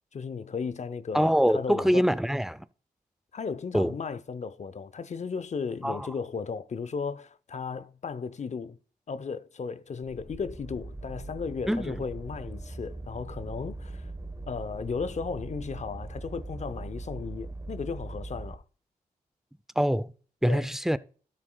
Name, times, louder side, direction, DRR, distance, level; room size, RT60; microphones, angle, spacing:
voice 1, 0.1-2.1 3.3-8.8 9.1-14.1 14.5-18.6 20.5-20.7, left 5 dB, 50° left, 0.7 m, -35 dB
voice 2, 1.1-2.6 3.7-3.9 5.8-6.1 11.7-12.0 19.8-20.1 20.4-21.0, equal, 5° right, 0.5 m, -24 dB
sound 1, 10.0-18.5, right 2 dB, 20° right, 1.2 m, -40 dB
12.5 x 7.6 x 2.3 m
cardioid pair, 45°, 15 cm